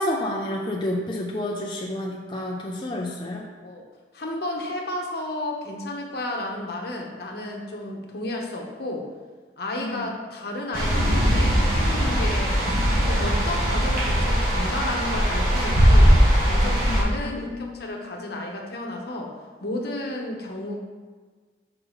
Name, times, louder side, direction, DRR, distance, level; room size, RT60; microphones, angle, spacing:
voice 1, 0.0-3.5 9.8-10.1 16.9-18.1, left 1 dB, 25° left, -2 dB, 0.4 m, -30 dB
voice 2, 4.1-9.1 9.6-12.5 13.0-16.2 16.4-19.3 19.6-20.8, left 1 dB, 65° left, 0 dB, 0.9 m, -32 dB
sound 1, 10.7-17.0, equal, 55° right, 1.6 m, -20 dB
6.5 x 4.8 x 3.1 m, 1.5 s
head